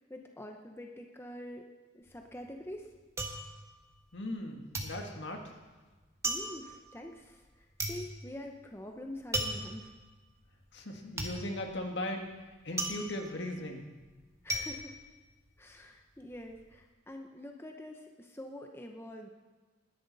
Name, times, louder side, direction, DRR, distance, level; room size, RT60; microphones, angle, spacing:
voice 1, 0.0-1.7 1.9-2.9 6.2-9.9 14.4-15.0 15.6-19.3, left 1 dB, 10° left, 3 dB, 0.8 m, -46 dB
sound 1, 2.0-4.4 4.7-15.9 16.2-16.8, right 2 dB, 15° right, 1.3 m, -38 dB
voice 2, 4.1-5.5 10.7-12.3 12.6-13.8, left 1 dB, 65° left, 2 dB, 1.8 m, -38 dB
19.5 x 10.5 x 4.1 m, 1.3 s
head